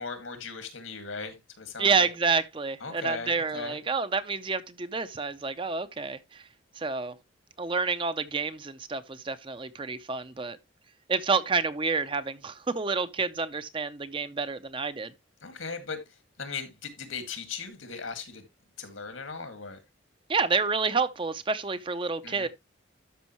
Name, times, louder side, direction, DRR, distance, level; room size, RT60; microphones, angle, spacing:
voice 1, 0.0-2.1 2.8-3.8 15.4-16.0 16.4-18.4 18.8-19.8 22.2-22.5, left 5 dB, 80° left, 2.0 m, -38 dB
voice 2, 1.8-6.4 6.8-7.1 7.6-10.6 11.1-15.1 20.3-22.5, right 4 dB, 25° right, 0.5 m, -29 dB
12.5 x 5.4 x 3.0 m
head